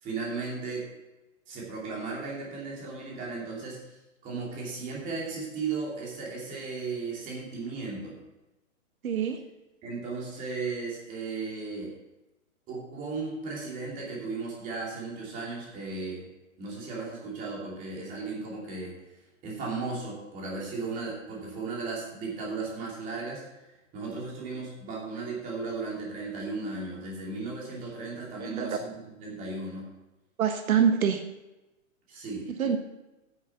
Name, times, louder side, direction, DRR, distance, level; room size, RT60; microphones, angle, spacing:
voice 1, 0.0-0.8 1.5-4.0 4.2-8.1 9.8-11.9 12.7-16.2 16.6-23.4 23.9-28.9 29.2-29.8 32.1-32.4, right 4 dB, 20° right, -3 dB, 2.8 m, -35 dB
voice 2, 9.0-9.4 28.4-28.8 30.4-31.2 32.6-32.8, right 7 dB, 80° right, 7 dB, 1.3 m, -25 dB
9.5 x 8.2 x 5.6 m, 1.0 s
hypercardioid pair, 160°, 42 cm